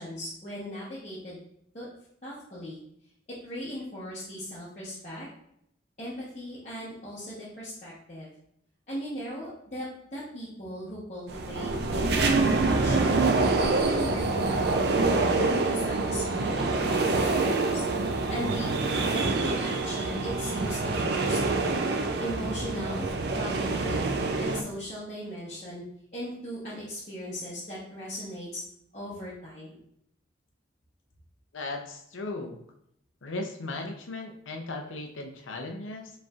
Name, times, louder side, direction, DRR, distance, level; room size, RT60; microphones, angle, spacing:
voice 1, 0.0-1.4 1.7-1.9 2.2-2.8 3.4-5.3 6.0-8.3 8.9-13.2 13.6-17.8 18.3-18.7 19.1-21.7 22.2-23.1 23.3-24.1 24.4-25.8 26.1-28.6 28.9-29.8, equal, 35° left, -10 dB, 1.0 m, -38 dB
sound 1, 11.3-24.6, right 3 dB, 55° right, 0.4 m, -26 dB
voice 2, 31.5-32.6 33.2-36.1, left 2 dB, 85° left, 3 dB, 0.6 m, -37 dB
5.0 x 3.1 x 2.4 m, 0.75 s
head